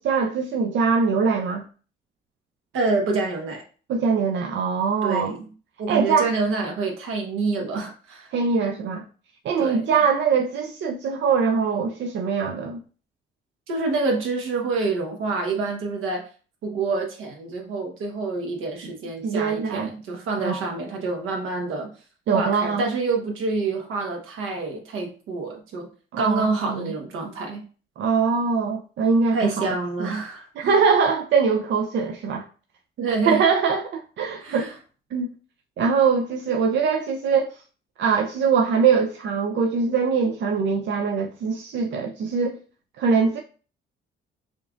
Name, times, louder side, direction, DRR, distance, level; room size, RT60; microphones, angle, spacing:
voice 1, 0.0-1.6 3.9-5.3 5.9-6.3 8.3-9.1 9.4-12.8 19.2-19.9 20.4-20.6 22.3-22.8 26.1-26.9 28.0-30.1 30.6-32.4 33.1-34.7 35.1-35.3 35.8-37.5 38.0-42.6 43.0-43.4, right 5 dB, 65° right, 0.5 m, -22 dB
voice 2, 2.7-3.6 5.0-5.5 5.8-8.3 9.6-9.9 13.7-16.3 16.6-21.9 22.3-25.9 26.2-27.6 29.3-30.8 33.0-33.4 34.4-34.7, right 3 dB, 85° right, 1.2 m, -27 dB
5.2 x 2.5 x 2.4 m
cardioid pair, 90°, 20 cm